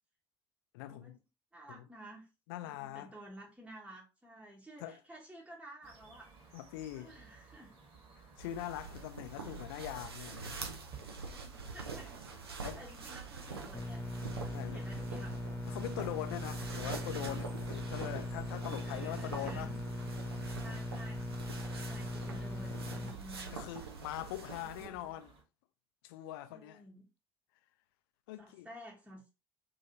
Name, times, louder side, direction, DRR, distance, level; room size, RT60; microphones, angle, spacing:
voice 1, 0.7-1.2 1.7-1.8 2.5-3.1 4.8-5.0 6.5-7.2 8.2-10.6 12.6-12.8 14.5-14.8 15.7-19.7 23.5-25.3 26.0-26.8 28.3-28.7, left 14 dB, 70° left, 0.4 m, -42 dB
voice 2, 1.5-2.3 2.6-6.3 6.9-7.7 11.1-12.2 12.5-14.1 14.5-15.4 18.7-19.8 20.6-21.4 21.7-23.5 24.5-25.1 26.5-27.1 28.4-29.3, right 1 dB, 10° right, 1.0 m, -52 dB
sound 1, 5.8-25.4, right 4 dB, 50° right, 1.3 m, -58 dB
sound 2, 8.4-24.9, right 4 dB, 85° right, 0.5 m, -45 dB
sound 3, 13.7-23.1, left 1 dB, 15° left, 0.7 m, -40 dB
2.8 x 2.7 x 2.6 m
figure-of-eight pair, 50°, 13 cm